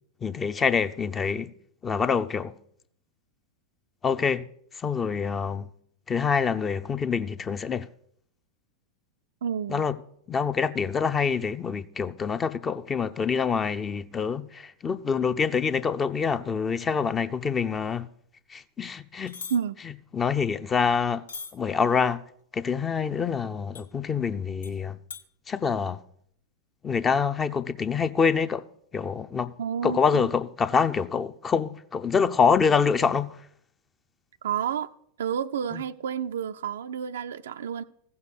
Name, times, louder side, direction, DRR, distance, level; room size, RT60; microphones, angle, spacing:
voice 1, 0.2-1.5 1.8-2.5 4.0-4.5 4.7-5.7 6.1-7.9 9.7-10.0 10.3-18.1 18.5-19.4 19.8-21.2 21.5-22.2 22.5-25.0 25.5-26.0 26.8-28.6 28.9-29.5 29.8-33.4 35.7-35.8, left 6 dB, 20° left, 0.6 m, -26 dB
voice 2, 9.4-9.8 19.5-19.8 29.6-30.3 34.4-34.9 35.2-37.8, right 8 dB, 60° right, 0.4 m, -30 dB
sound 1, 19.3-19.6 21.3-21.5 23.7-23.9 24.6-24.7 25.1-25.2, left 5 dB, 65° left, 0.9 m, -39 dB
15.0 x 7.0 x 6.7 m
figure-of-eight pair, 90°, 0 cm